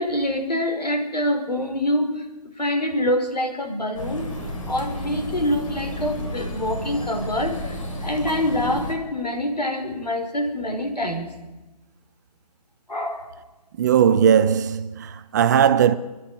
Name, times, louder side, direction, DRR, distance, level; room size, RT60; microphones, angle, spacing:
voice 1, 0.0-2.3 2.6-4.3 4.7-11.3 12.9-13.3, left 1 dB, 80° left, 5.4 m, -25 dB
sound 1, 3.9-8.9, equal, 55° left, 4.9 m, -32 dB
voice 2, 13.8-16.0, right 8 dB, 25° right, 0.8 m, -18 dB
26.5 x 11.0 x 9.3 m
figure-of-eight pair, 145°, 21 cm